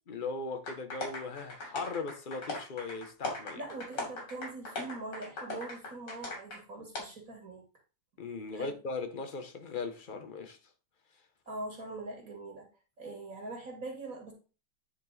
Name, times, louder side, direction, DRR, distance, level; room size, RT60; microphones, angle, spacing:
voice 1, 0.1-3.6 8.2-10.6, left 4 dB, 40° left, 0.7 m, -38 dB
sound 1, 0.7-6.6 6.9-7.0, left 2 dB, 85° left, 3.3 m, -39 dB
voice 2, 3.6-7.6 8.5-8.7 11.5-12.7 13.0-14.3, right 2 dB, 50° right, 2.4 m, -42 dB
9.4 x 4.5 x 4.0 m
omnidirectional pair, 1.9 m